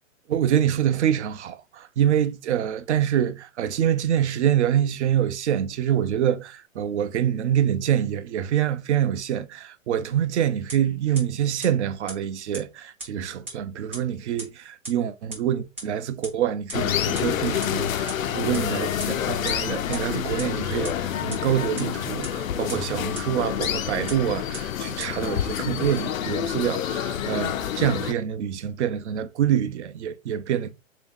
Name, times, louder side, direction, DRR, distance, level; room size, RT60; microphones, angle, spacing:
voice 1, 0.3-30.7, right 10 dB, 60° right, 0.6 m, -26 dB
sound 1, 10.7-10.8 11.1-11.2 11.6-11.7 12.1-12.2 12.5-12.6 13.0-13.1 13.5-13.6 13.9-14.0 14.4-14.5 14.8-14.9 15.3-15.4 15.8-15.9 16.2-16.3 16.7-16.8 17.1-17.2 17.6-17.7 18.1-18.2 18.5-18.6 19.0-19.1 19.5-19.6 19.9-20.0 20.4-20.5 20.8-20.9 21.3-21.4 21.8-21.9 22.2-22.3 22.7-22.8 23.1-23.2 23.6-23.7 24.1-24.2 24.5-24.6 25.0-25.1, right 2 dB, 10° right, 0.3 m, -34 dB
sound 2, 16.7-28.1, left 9 dB, 90° left, 0.6 m, -28 dB
3.5 x 2.8 x 3.6 m
hypercardioid pair, 145°, 39 cm